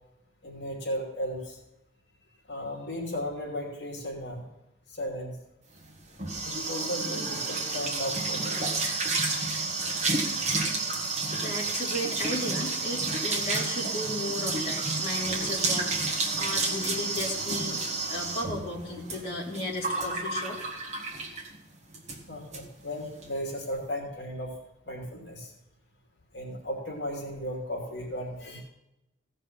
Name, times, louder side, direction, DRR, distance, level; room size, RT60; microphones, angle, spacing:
voice 1, 0.4-1.6 2.5-4.5 4.9-5.3 6.4-8.8 22.3-24.5 24.9-25.5 26.3-28.6, equal, 60° left, -2 dB, 2.7 m, -35 dB
sound 1, 5.8-21.6 21.9-22.2 22.5-22.6 22.9-23.3, right 3 dB, 35° right, 1.8 m, -30 dB
voice 2, 11.4-20.6, left 1 dB, 30° left, -5 dB, 3.2 m, -35 dB
16.5 x 5.4 x 5.8 m, 0.92 s
head